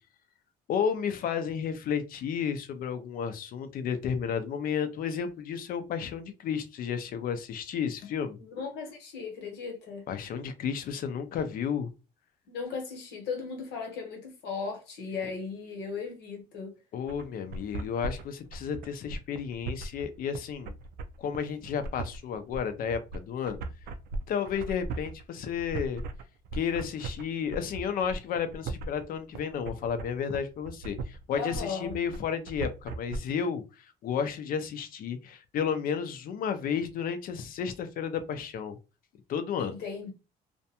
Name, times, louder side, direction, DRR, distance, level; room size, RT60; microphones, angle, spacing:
voice 1, 0.7-8.4 10.1-11.9 16.9-20.7 21.2-23.6 24.3-26.0 26.5-38.8 39.3-39.8, left 7 dB, 60° left, 0.5 m, -32 dB
voice 2, 8.4-10.0 12.5-16.7 31.3-32.0 39.6-40.1, left 5 dB, 80° left, 1.0 m, -37 dB
sound 1, 17.1-33.2, right 3 dB, 70° right, 0.4 m, -38 dB
2.5 x 2.2 x 2.7 m
cardioid pair, 110°, 17 cm